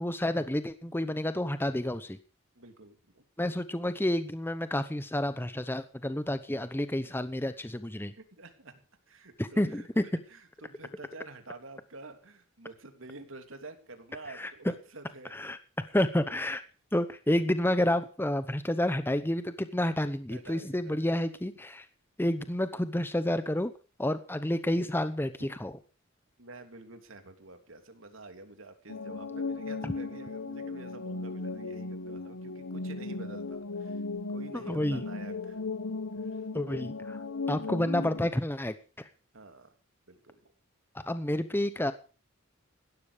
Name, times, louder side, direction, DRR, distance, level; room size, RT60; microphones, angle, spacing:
voice 1, 0.0-2.2 3.4-8.1 9.4-10.0 14.3-14.7 15.3-16.6 16.9-21.9 22.2-23.7 24.0-25.7 29.8-29.9 34.5-35.0 36.5-37.2 37.5-39.1 41.1-41.9, left 1 dB, 10° left, 11 dB, 0.9 m, -30 dB
voice 2, 2.5-3.2 8.2-8.8 9.1-9.9 10.3-15.3 20.3-21.2 26.4-34.0 34.3-35.6 36.1-36.5 36.9-37.0 37.5-37.8 39.3-39.7 40.1-40.5, right 2 dB, 75° right, 7 dB, 3.1 m, -49 dB
sound 1, 28.9-38.3, left 3 dB, 85° left, 1.1 m, -36 dB
16.5 x 13.0 x 5.1 m, 0.37 s
head